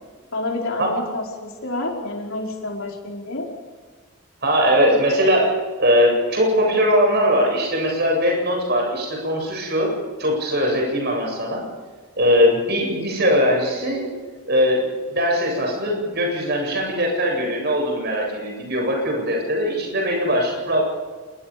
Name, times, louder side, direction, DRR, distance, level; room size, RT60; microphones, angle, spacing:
voice 1, 0.3-3.5, left 2 dB, 65° left, -1 dB, 4.8 m, -28 dB
voice 2, 4.4-5.5 5.8-9.9 10.2-11.6 12.2-14.0 14.5-14.8 15.1-20.8, equal, 50° right, 0 dB, 7.9 m, -20 dB
27.0 x 21.0 x 5.2 m, 1.5 s
head